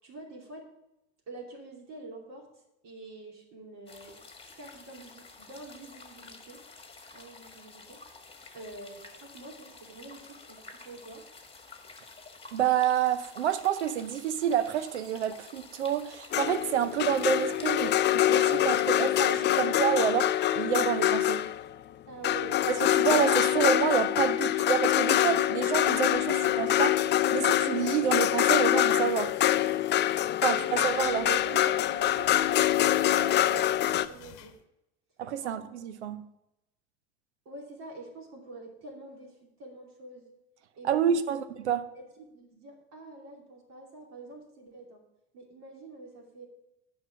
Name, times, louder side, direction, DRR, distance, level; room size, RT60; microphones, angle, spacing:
voice 1, 0.0-0.7 1.3-2.5 2.8-4.2 4.5-6.6 7.1-8.0 8.3-11.2 22.1-22.6 30.4-30.9 31.2-34.5 35.4-35.6 37.4-40.3 40.7-41.1 41.9-45.0 45.3-46.4, right 2 dB, 55° right, 2.9 m, -46 dB
sound 1, 3.9-19.1, left 4 dB, 15° left, 1.5 m, -50 dB
voice 2, 12.5-21.4 22.7-29.3 30.4-31.4 35.2-36.2 40.8-41.8, right 9 dB, 90° right, 0.7 m, -28 dB
sound 2, 16.3-21.7 22.2-34.1, left 13 dB, 35° left, 0.4 m, -25 dB
sound 3, 29.0-34.6, left 11 dB, 65° left, 1.0 m, -48 dB
8.0 x 5.6 x 6.7 m
hypercardioid pair, 80°, 33 cm